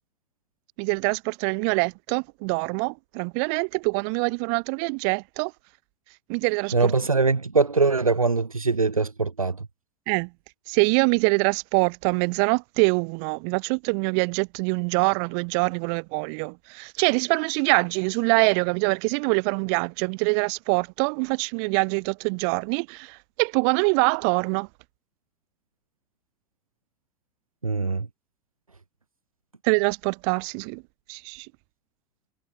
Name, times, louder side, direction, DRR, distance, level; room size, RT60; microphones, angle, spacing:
voice 1, 0.8-5.5 6.3-6.9 10.1-10.3 10.7-24.7 29.6-30.8 31.1-31.5, right 40 dB or more, 50° right, 1.0 m, -24 dB
voice 2, 6.7-9.7 27.6-28.1, right 4 dB, 90° right, 0.4 m, -22 dB
figure-of-eight pair, 70°, 17 cm